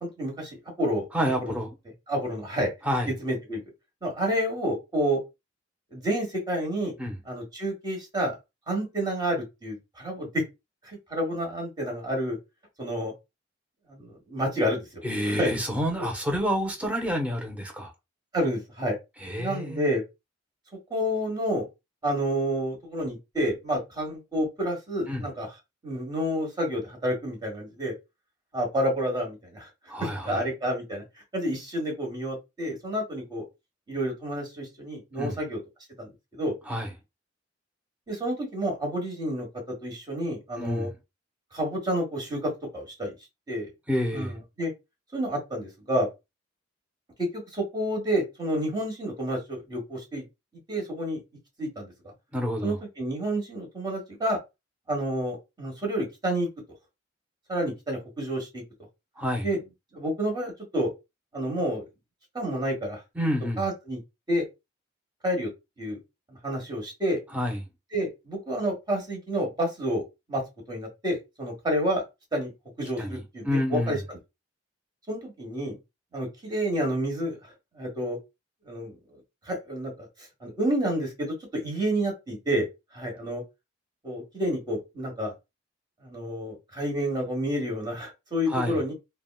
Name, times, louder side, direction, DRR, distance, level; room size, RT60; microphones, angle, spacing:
voice 1, 0.0-1.0 1.4-1.5 2.1-2.7 3.2-3.6 4.0-5.2 5.9-6.9 7.2-8.4 8.7-10.3 10.8-12.4 12.8-13.1 13.9-15.6 18.3-19.0 19.4-20.0 20.9-21.6 22.0-25.5 25.8-27.9 28.5-29.7 30.0-31.0 31.3-33.4 33.9-35.6 36.0-36.5 38.1-40.9 41.5-43.1 43.5-43.7 44.1-44.7 45.1-46.1 47.2-50.2 50.7-51.2 51.6-52.1 52.6-54.4 54.9-56.5 57.5-58.6 59.4-59.6 59.9-60.9 61.3-61.8 62.3-63.0 63.6-64.0 64.3-64.4 65.2-65.5 65.8-66.0 66.3-67.2 67.9-70.0 70.3-70.4 70.7-72.0 72.3-72.5 72.8-74.2 75.1-75.7 76.1-78.2 78.7-79.2 79.4-80.1 80.4-82.7 82.9-83.4 84.0-85.3 86.0-88.9, equal, 25° right, 1.2 m, -29 dB
voice 2, 1.1-1.8 2.8-3.1 7.0-7.1 15.0-17.9 19.2-19.8 25.1-25.2 29.9-30.4 35.2-35.4 36.7-36.9 40.6-40.9 43.9-44.4 52.3-52.8 59.2-59.5 63.2-63.6 67.3-67.6 73.0-74.0 88.5-88.8, equal, 5° right, 0.6 m, -28 dB
3.4 x 2.1 x 2.3 m
head